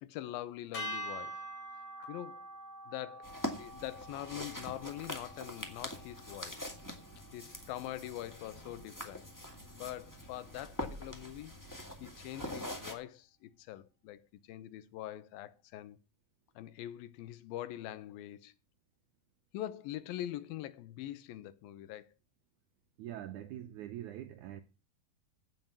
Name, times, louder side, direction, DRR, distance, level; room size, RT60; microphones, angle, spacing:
voice 1, 0.0-1.4 2.1-2.5 2.9-6.7 7.3-9.3 9.7-11.5 12.0-16.0 16.6-18.5 19.5-22.1, left 13 dB, 80° left, 2.6 m, -43 dB
sound 1, 0.7-7.1, equal, 45° left, 3.3 m, -46 dB
sound 2, 3.2-12.9, equal, 20° left, 0.5 m, -44 dB
voice 2, 23.0-24.6, right 12 dB, 80° right, 1.7 m, -44 dB
16.0 x 5.5 x 7.3 m
omnidirectional pair, 4.2 m